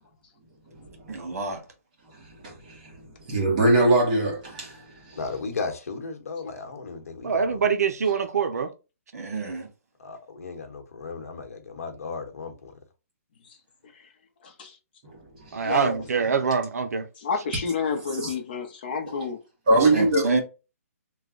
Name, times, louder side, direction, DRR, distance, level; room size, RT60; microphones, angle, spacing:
voice 1, 1.1-1.6 9.1-9.7 19.7-20.4, right 3 dB, 70° right, 1.5 m, -28 dB
voice 2, 2.4-2.9 3.3-5.2 15.6-15.8 18.2-18.3 19.7-20.2, right 2 dB, 30° right, 1.2 m, -22 dB
voice 3, 5.1-7.5 10.0-12.7, left 4 dB, 70° left, 1.1 m, -35 dB
voice 4, 7.2-8.7 15.5-17.1, right 6 dB, 85° right, 0.5 m, -24 dB
voice 5, 14.4-14.8 15.6-16.0 17.2-19.4, left 5 dB, 35° left, 0.7 m, -30 dB
3.1 x 2.2 x 3.7 m
hypercardioid pair, 175°, 8 cm